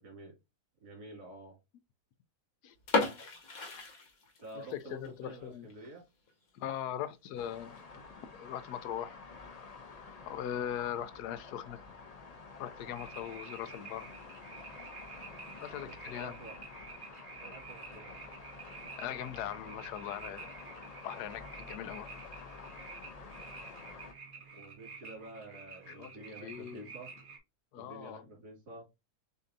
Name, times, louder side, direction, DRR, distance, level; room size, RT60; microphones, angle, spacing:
voice 1, 0.0-0.3 0.8-1.6 4.4-6.0 15.6-16.5 17.4-18.1 24.5-27.1 27.7-28.8, right 2 dB, 75° right, 2.9 m, -49 dB
sound 1, 2.8-4.7 5.0-5.1 5.7-5.9 6.3-6.4 6.6-6.7 7.5-7.8, left 3 dB, 65° left, 1.4 m, -33 dB
voice 2, 4.6-5.7 6.5-7.8 8.1-9.2 10.3-11.8 12.6-14.1 15.6-16.4 19.0-20.6 21.0-22.1 25.9-26.9 27.7-28.3, left 10 dB, 85° left, 1.1 m, -40 dB
sound 2, 7.4-24.1, left 4 dB, 45° left, 0.5 m, -50 dB
sound 3, 12.9-27.4, right 4 dB, 35° right, 1.1 m, -50 dB
6.6 x 2.7 x 2.6 m
omnidirectional pair, 1.7 m